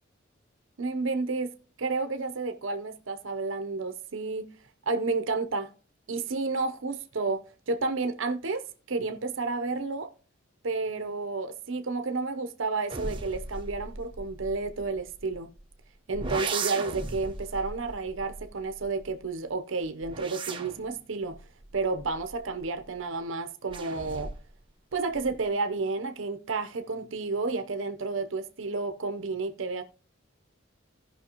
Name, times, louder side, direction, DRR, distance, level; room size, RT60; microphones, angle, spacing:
voice 1, 0.8-1.5 1.8-4.5 4.9-5.7 6.1-7.4 7.7-8.6 8.9-10.1 10.6-15.5 16.1-21.4 21.7-24.3 24.9-29.8, right 3 dB, 75° right, 0.8 m, -31 dB
sound 1, 12.9-15.6 16.1-19.2 19.8-22.9 23.7-24.6 24.9-25.5, right 3 dB, 25° right, 1.0 m, -38 dB
16.5 x 5.7 x 2.9 m
head